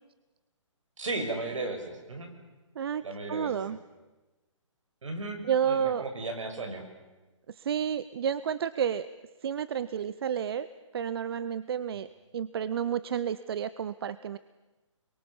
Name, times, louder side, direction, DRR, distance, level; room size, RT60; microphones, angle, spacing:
voice 1, 1.0-2.3 3.0-3.6 5.0-6.8, right 2 dB, 70° right, 6 dB, 6.1 m, -35 dB
voice 2, 3.3-3.8 5.4-6.0 7.5-9.1 9.4-12.1 12.3-14.4, right 8 dB, 50° right, 15 dB, 0.8 m, -30 dB
30.0 x 23.0 x 7.2 m, 1.1 s
hypercardioid pair, 150°, 17 cm